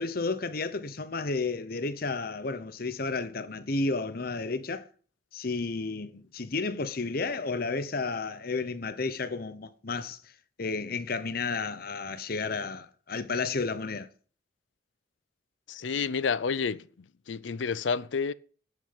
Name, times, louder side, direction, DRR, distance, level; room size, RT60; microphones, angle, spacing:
voice 1, 0.0-4.9 5.3-10.2 10.6-14.1, left 3 dB, 55° left, 0.9 m, -32 dB
voice 2, 15.7-16.9 17.3-18.3, left 5 dB, 80° left, 0.5 m, -29 dB
10.5 x 6.7 x 8.0 m
head